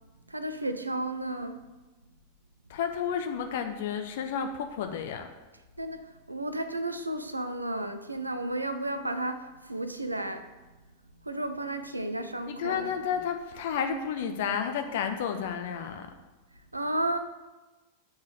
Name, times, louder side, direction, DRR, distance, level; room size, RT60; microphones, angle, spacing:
voice 1, 0.3-1.6 5.8-10.5 11.2-12.9 16.7-17.2, right 1 dB, 85° right, 0.5 m, -33 dB
voice 2, 2.7-5.3 12.5-16.1, left 7 dB, 55° left, 0.6 m, -31 dB
7.0 x 4.0 x 6.6 m
figure-of-eight pair, 90°, 0 cm